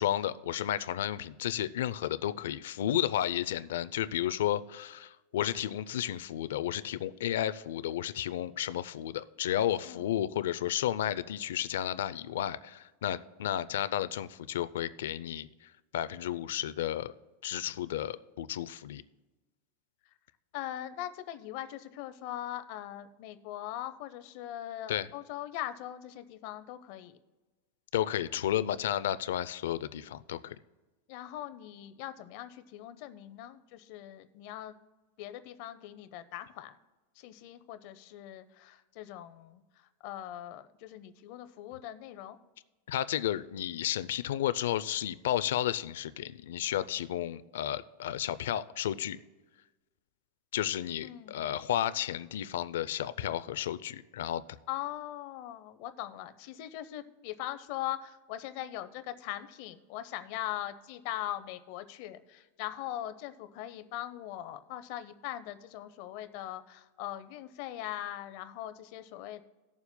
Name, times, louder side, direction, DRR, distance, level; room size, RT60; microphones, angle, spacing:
voice 1, 0.0-15.5 15.9-17.1 17.4-19.0 24.9-25.1 27.9-30.6 42.9-49.2 50.5-54.4, left 11 dB, 85° left, 15 dB, 0.5 m, -32 dB
voice 2, 20.5-27.2 31.1-34.7 35.2-36.8 37.2-42.4 51.0-51.6 54.7-69.4, left 13 dB, 45° left, 11 dB, 0.6 m, -41 dB
19.0 x 7.1 x 2.2 m, 1.2 s
supercardioid pair, 170°, 0 cm